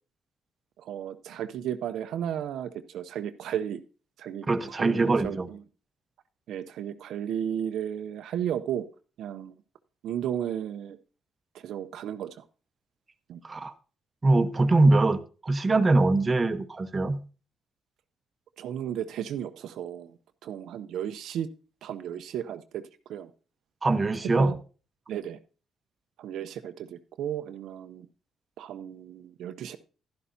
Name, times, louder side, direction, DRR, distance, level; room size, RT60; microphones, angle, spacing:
voice 1, 0.8-3.8 4.2-5.6 6.5-8.9 9.2-9.5 10.0-11.0 11.5-12.4 13.3-13.4 18.6-21.5 21.8-22.8 23.1-23.3 24.2-24.6 25.1-25.4 26.2-28.1 28.6-29.8, right 10 dB, 75° right, 9 dB, 0.6 m, -34 dB
voice 2, 4.5-5.5 13.4-13.7 14.2-17.2 23.8-24.5, right 2 dB, 25° right, 8 dB, 0.9 m, -23 dB
11.5 x 11.0 x 2.7 m, 0.36 s
cardioid pair, 90°, 0 cm